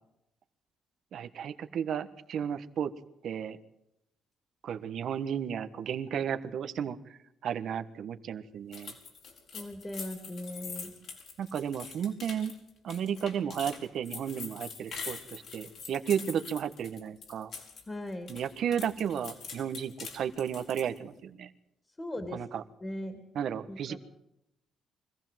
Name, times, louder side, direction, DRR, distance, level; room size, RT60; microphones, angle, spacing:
voice 1, 1.1-2.9 3.2-3.6 4.6-8.9 11.4-12.5 12.8-17.5 18.3-21.5 22.3-22.6 23.3-24.0, right 8 dB, 70° right, 10 dB, 1.5 m, -33 dB
sound 1, 8.7-17.8 18.1-21.0, left 5 dB, 65° left, 6.1 m, -44 dB
voice 2, 9.5-10.9 17.9-18.3 22.0-22.4 22.8-23.2 23.7-24.0, left 1 dB, 20° left, 6 dB, 2.9 m, -38 dB
24.5 x 15.5 x 7.7 m, 0.84 s
cardioid pair, 90°, 0 cm